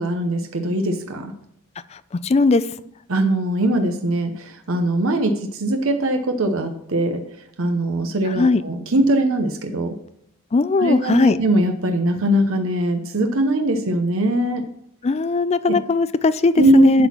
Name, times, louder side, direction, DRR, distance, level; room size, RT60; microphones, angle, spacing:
voice 1, 0.0-1.3 3.1-7.2 7.6-10.0 10.8-14.6 15.6-15.8 16.6-17.1, right 1 dB, 65° right, 5 dB, 0.8 m, -21 dB
voice 2, 2.2-2.6 8.3-8.6 10.5-11.4 15.0-17.1, left 3 dB, 30° left, 15 dB, 0.3 m, -18 dB
11.5 x 4.2 x 7.2 m, 0.75 s
head